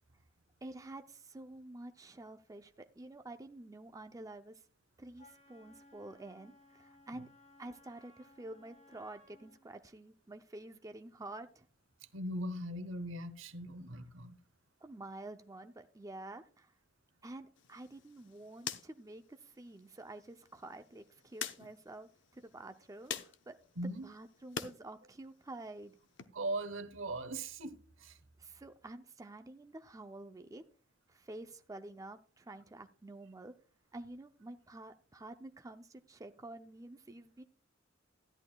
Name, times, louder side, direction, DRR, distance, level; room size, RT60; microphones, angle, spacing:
voice 1, 0.6-4.6 5.0-7.3 7.6-11.7 14.8-16.7 17.2-23.6 23.8-26.0 28.4-30.6 31.1-33.5 33.9-37.4, right 2 dB, 15° right, 0.5 m, -49 dB
Wind instrument woodwind instrument, 5.2-9.7, left 2 dB, 35° left, 3.6 m, -62 dB
voice 2, 12.1-14.4 23.8-24.1 26.3-28.2, right 1 dB, 80° right, 1.1 m, -39 dB
sound 1, 17.6-24.8 25.1-26.2, left 7 dB, 65° left, 0.8 m, -47 dB
13.5 x 10.5 x 2.3 m
head